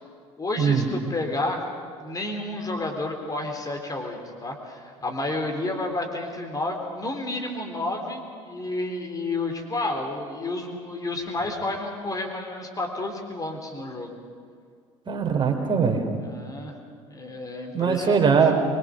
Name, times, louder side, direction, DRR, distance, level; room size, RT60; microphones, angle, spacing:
voice 1, 0.4-1.6 2.0-14.2 16.2-16.8 17.1-18.4, left 2 dB, 20° left, 3 dB, 3.7 m, -31 dB
voice 2, 15.1-16.0 17.7-18.5, right 6 dB, 30° right, 3 dB, 3.4 m, -21 dB
24.0 x 21.5 x 6.5 m, 2.1 s
figure-of-eight pair, 65°, 17 cm